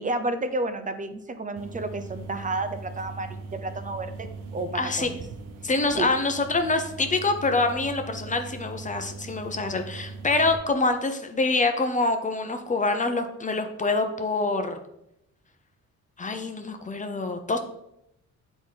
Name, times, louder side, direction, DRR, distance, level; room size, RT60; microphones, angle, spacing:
voice 1, 0.0-4.3 4.5-5.2 6.0-6.1, right 2 dB, 25° right, 9 dB, 0.7 m, -31 dB
sound 1, 1.6-10.6, right 4 dB, 90° right, 0.8 m, -40 dB
voice 2, 4.7-5.1 5.6-14.8 16.2-17.6, left 3 dB, 25° left, 6 dB, 0.9 m, -25 dB
8.3 x 4.0 x 4.0 m, 0.82 s
cardioid pair, 90°, 30 cm